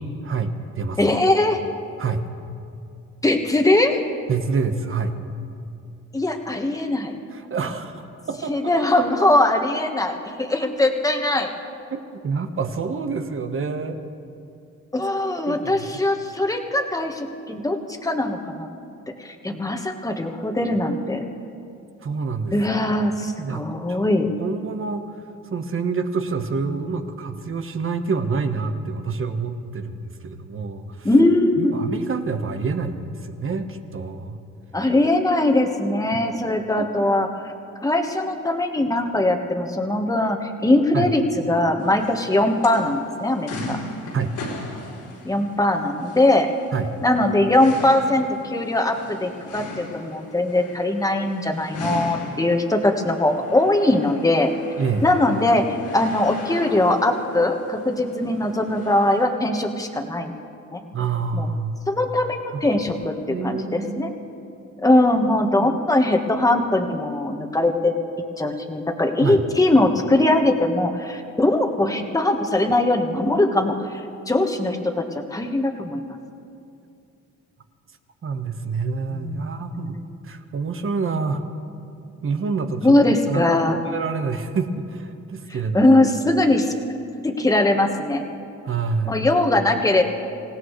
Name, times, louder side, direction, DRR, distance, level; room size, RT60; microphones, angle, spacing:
voice 1, 0.0-1.1 2.0-2.2 4.3-5.1 7.3-8.7 11.9-12.0 12.2-14.0 15.5-15.8 22.0-22.5 23.4-23.6 23.9-24.0 24.4-25.1 25.4-31.1 31.6-34.4 36.8-36.9 40.9-41.1 44.1-44.3 46.7-46.9 54.8-55.1 60.9-61.8 63.3-64.1 65.6-65.7 69.2-69.4 78.2-80.0 80.2-81.4 82.2-85.9 88.6-89.2, right 4 dB, 45° right, 7 dB, 1.3 m, -27 dB
voice 2, 1.0-1.6 3.2-4.0 6.1-7.2 8.5-11.5 14.9-18.7 19.2-21.2 22.5-24.3 26.7-26.8 31.0-31.8 34.7-37.3 37.8-41.2 41.5-43.8 45.2-46.5 47.0-54.5 55.0-60.3 60.7-60.8 61.3-61.5 61.9-64.1 64.8-67.9 68.4-74.0 74.3-75.0 75.3-76.1 79.1-79.5 79.7-80.0 82.8-83.8 85.7-86.7 87.2-88.2 89.1-90.0, left 1 dB, 10° left, 4 dB, 1.5 m, -21 dB
sound 1, 41.8-59.2, left 2 dB, 85° left, 4.3 m, -38 dB
26.5 x 16.5 x 3.3 m, 2.6 s
cardioid pair, 90°, 30 cm